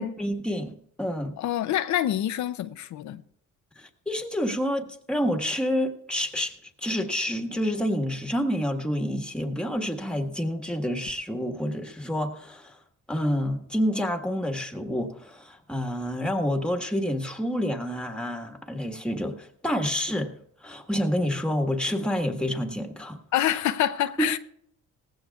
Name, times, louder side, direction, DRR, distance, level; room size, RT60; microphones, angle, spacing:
voice 1, 0.0-1.3 3.8-6.5 6.8-12.8 13.1-20.3 20.6-23.2 24.2-24.3, equal, 5° left, 1.5 m, -28 dB
voice 2, 1.4-3.2 23.3-24.4, left 11 dB, 70° left, 0.6 m, -26 dB
18.0 x 15.5 x 2.4 m
cardioid pair, 90°, 30 cm